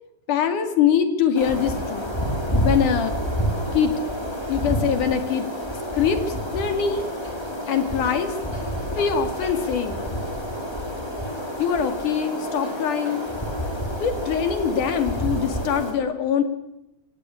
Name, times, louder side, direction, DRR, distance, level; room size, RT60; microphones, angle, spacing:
voice 1, 0.3-2.1 2.6-3.1 3.7-3.9 4.5-5.5 5.9-6.2 6.5-7.0 7.7-8.3 8.9-10.0 11.6-13.2 14.0-16.4, left 8 dB, 60° left, 8 dB, 3.6 m, -23 dB
sound 1, 1.3-15.9, equal, 5° left, 3.4 m, -28 dB
27.0 x 15.5 x 9.8 m, 0.86 s
omnidirectional pair, 4.1 m